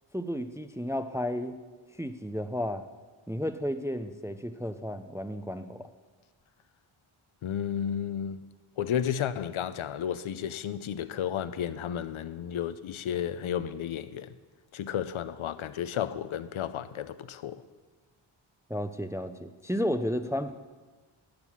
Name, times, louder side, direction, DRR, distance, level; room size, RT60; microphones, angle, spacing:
voice 1, 0.1-1.6 2.0-2.9 3.3-5.9 18.7-20.5, equal, 5° right, 0.4 m, -32 dB
voice 2, 7.4-8.4 8.8-14.3 14.7-17.6, left 9 dB, 80° left, 0.7 m, -32 dB
11.5 x 10.0 x 7.1 m
wide cardioid pair, 165°, 48 cm